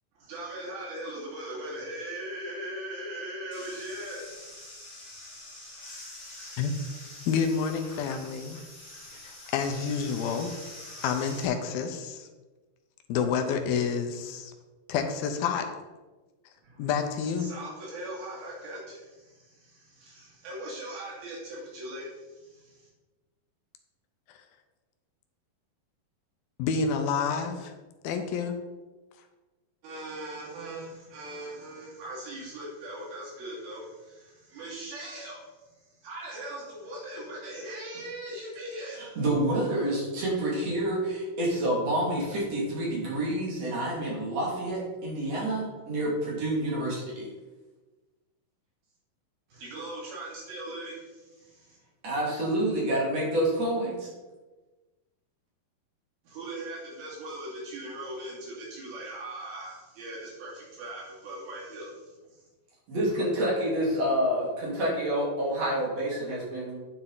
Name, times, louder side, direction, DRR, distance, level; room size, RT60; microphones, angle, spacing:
voice 1, 0.3-4.6 16.6-16.9 17.4-22.9 29.8-39.0 49.5-51.8 56.2-62.4, right 1 dB, 90° right, -5 dB, 4.5 m, -40 dB
sound 1, 3.5-11.5, left 1 dB, 20° left, 1.0 m, -45 dB
voice 2, 7.3-8.6 9.1-10.5 11.0-12.3 13.1-14.5 14.9-15.7 16.8-17.5 26.6-27.7 28.0-28.6, left 6 dB, 85° left, 6 dB, 2.7 m, -29 dB
voice 3, 38.9-47.3 52.0-54.1 62.9-66.8, right 1 dB, 45° right, -4 dB, 3.5 m, -28 dB
10.0 x 6.0 x 4.0 m, 1.2 s
omnidirectional pair, 4.2 m